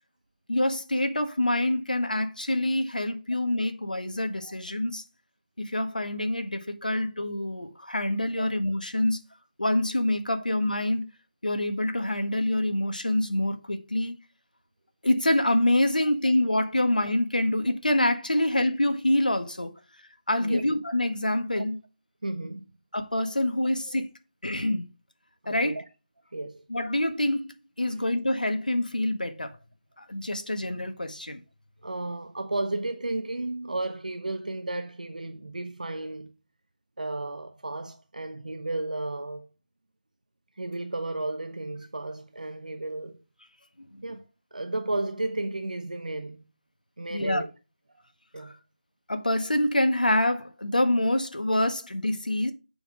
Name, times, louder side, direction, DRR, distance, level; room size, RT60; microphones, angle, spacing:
voice 1, 0.5-5.0 5.6-9.2 9.6-11.1 11.4-14.1 15.0-19.7 20.3-21.8 22.9-24.1 24.4-24.9 25.4-25.8 26.7-27.5 27.8-29.6 30.0-31.4 43.8-44.0 47.1-47.4 48.4-48.5 49.1-52.5, left 1 dB, 75° left, 1.7 m, -26 dB
voice 2, 22.2-22.6 23.9-24.0 25.4-25.8 26.3-26.6 31.8-36.3 37.0-39.5 40.6-43.2 44.0-44.2 44.5-46.4 47.0-47.5 48.3-48.5, right 2 dB, 65° right, 0.9 m, -33 dB
7.0 x 5.9 x 5.0 m
figure-of-eight pair, 165°, 5 cm